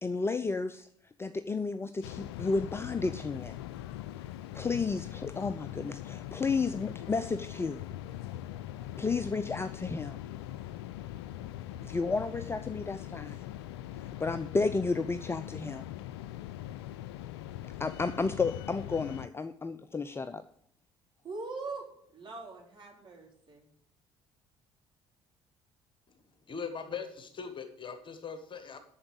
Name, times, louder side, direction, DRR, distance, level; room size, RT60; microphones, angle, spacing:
voice 1, 0.0-3.6 4.5-7.8 9.0-10.2 11.8-13.4 14.2-15.9 17.8-20.4, left 4 dB, 15° left, 11 dB, 0.5 m, -32 dB
sound 1, 2.0-19.3, left 13 dB, 70° left, 0.4 m, -41 dB
voice 2, 21.2-21.8 22.1-23.7, right 3 dB, 35° right, -1 dB, 4.3 m, -41 dB
voice 3, 26.5-28.8, left 6 dB, 35° left, 8 dB, 1.4 m, -40 dB
8.7 x 7.2 x 8.2 m, 0.66 s
figure-of-eight pair, 50°, 14 cm